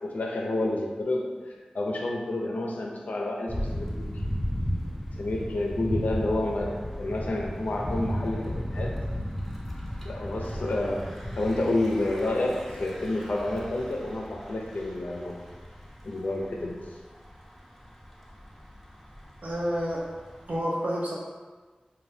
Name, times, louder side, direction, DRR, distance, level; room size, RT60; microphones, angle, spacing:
voice 1, 0.0-4.2 5.2-9.0 10.0-11.1 11.4-15.4 16.0-16.8, left 2 dB, 85° left, 0 dB, 0.4 m, -29 dB
Thunder / Bicycle, 3.5-20.6, equal, 5° left, 0.5 m, -35 dB
voice 2, 19.4-20.0 20.5-21.1, equal, 75° right, -4 dB, 0.6 m, -29 dB
2.7 x 2.2 x 3.2 m, 1.4 s
wide cardioid pair, 60°, 3 cm